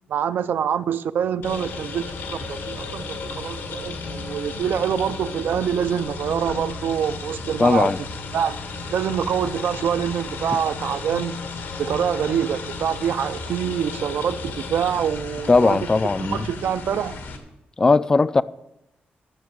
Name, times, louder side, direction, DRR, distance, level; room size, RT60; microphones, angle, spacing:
voice 1, 0.1-7.9 8.3-8.6 8.9-11.4 11.8-15.8 16.3-17.2, right 8 dB, 65° right, 0.5 m, -25 dB
sound 1, 1.4-17.4, left 4 dB, 90° left, 2.0 m, -34 dB
voice 2, 7.6-8.0 15.5-16.5 17.8-18.4, left 3 dB, 20° left, 0.3 m, -18 dB
12.0 x 7.0 x 7.5 m
wide cardioid pair, 165°, 4 cm